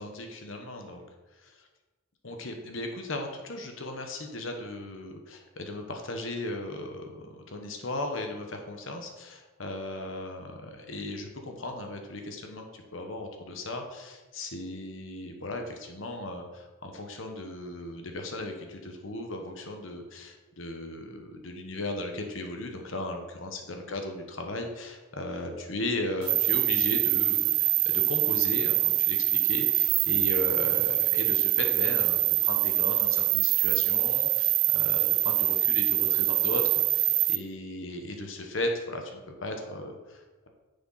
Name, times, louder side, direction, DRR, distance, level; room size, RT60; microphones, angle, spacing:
voice 1, 0.0-1.0 2.2-40.5, left 1 dB, 65° left, 3 dB, 1.3 m, -36 dB
sound 1, 26.2-37.4, right 18 dB, 85° right, 0.4 m, -24 dB
9.8 x 7.0 x 4.2 m, 1.2 s
head